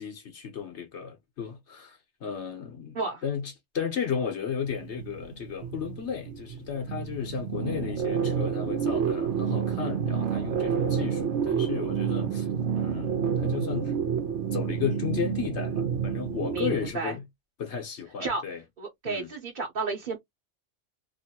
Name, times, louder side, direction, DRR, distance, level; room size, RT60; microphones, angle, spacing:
voice 1, 0.0-12.5 12.7-13.9 14.5-17.2 17.6-18.6 19.0-19.3, left 7 dB, 75° left, 1.3 m, -34 dB
sound 1, 4.6-16.9, right 7 dB, 80° right, 1.0 m, -29 dB
voice 2, 16.5-17.2 18.2-18.4 18.8-20.2, right 3 dB, 45° right, 1.0 m, -32 dB
3.0 x 2.7 x 2.8 m
omnidirectional pair, 1.2 m